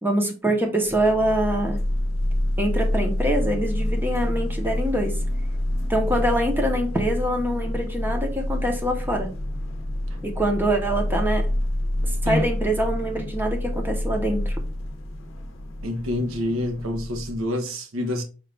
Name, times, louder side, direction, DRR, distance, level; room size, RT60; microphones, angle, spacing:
voice 1, 0.0-1.8 2.6-5.1 5.9-9.3 10.2-11.5 12.2-14.6, right 1 dB, 10° right, 0.7 m, -24 dB
sound 1, 0.9-17.4, left 1 dB, 65° left, 0.6 m, -27 dB
voice 2, 15.8-18.2, left 1 dB, 85° right, 0.8 m, -27 dB
5.0 x 2.4 x 3.3 m
head